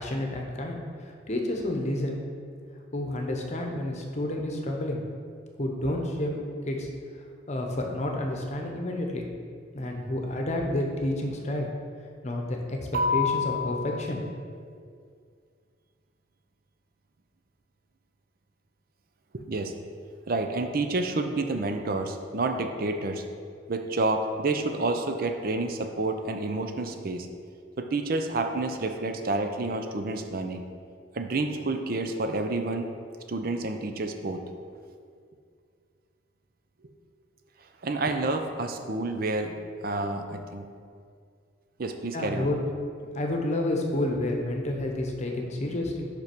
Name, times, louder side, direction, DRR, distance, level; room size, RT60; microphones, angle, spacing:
voice 1, 0.0-2.2 2.9-5.0 5.6-6.4 6.7-6.9 7.5-9.3 9.7-11.7 12.2-12.8 13.1-14.2 42.1-42.6 43.1-46.1, left 1 dB, 40° left, 1 dB, 0.9 m, -30 dB
voice 2, 12.9-14.2 19.3-19.7 20.3-23.2 23.7-27.3 27.8-30.6 31.1-32.9 33.3-34.4 37.8-39.5 39.8-40.6 41.8-42.5, right 2 dB, 50° right, 6 dB, 0.6 m, -29 dB
5.7 x 5.2 x 6.0 m, 2.2 s
head